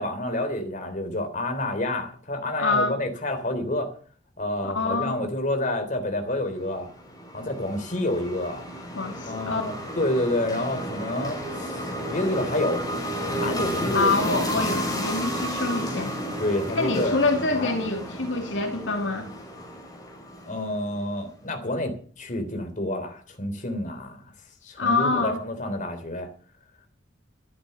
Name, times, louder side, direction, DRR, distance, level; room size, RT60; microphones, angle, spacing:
voice 1, 0.0-3.9 4.4-6.9 7.3-8.6 9.3-12.8 13.3-14.2 16.4-17.7 20.5-24.2 24.6-26.3, left 1 dB, 45° left, 6 dB, 3.4 m, -29 dB
voice 2, 2.6-3.0 4.6-5.3 9.0-9.7 13.9-16.1 16.7-19.3 24.8-25.4, left 3 dB, 80° left, 4 dB, 2.6 m, -26 dB
sound 1, 6.7-21.0, equal, 20° left, 5.6 m, -32 dB
13.0 x 11.5 x 6.9 m, 0.43 s
head